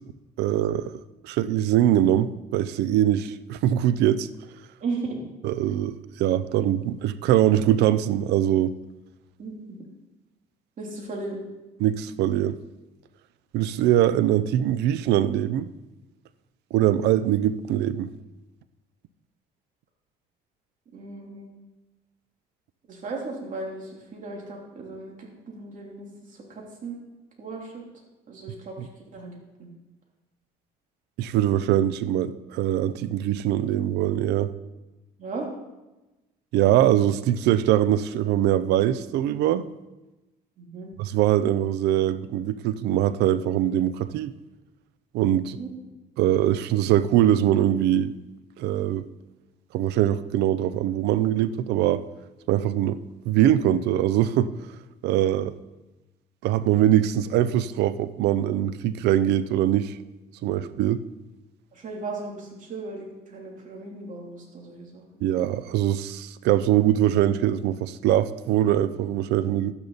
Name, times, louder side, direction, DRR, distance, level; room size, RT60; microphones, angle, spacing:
voice 1, 0.4-0.9 1.2-4.3 5.4-8.7 11.8-12.6 13.5-15.7 16.7-18.1 28.8-28.9 31.2-34.5 36.5-39.6 41.0-44.3 45.1-45.6 46.2-48.1 48.6-49.0 49.7-52.0 52.5-54.5 55.0-55.5 56.4-60.0 60.4-61.0 65.2-69.7, right 12 dB, 80° right, 15 dB, 0.6 m, -22 dB
voice 2, 4.8-5.2 9.4-9.8 10.8-11.4 20.9-21.5 22.9-27.0 27.4-27.8 28.3-29.7 35.2-35.5 40.6-40.9 45.6-45.9 60.6-60.7 61.7-65.2, right 3 dB, 50° right, -1 dB, 3.1 m, -36 dB
12.0 x 9.8 x 4.0 m, 1.0 s
cardioid pair, 110°, 17 cm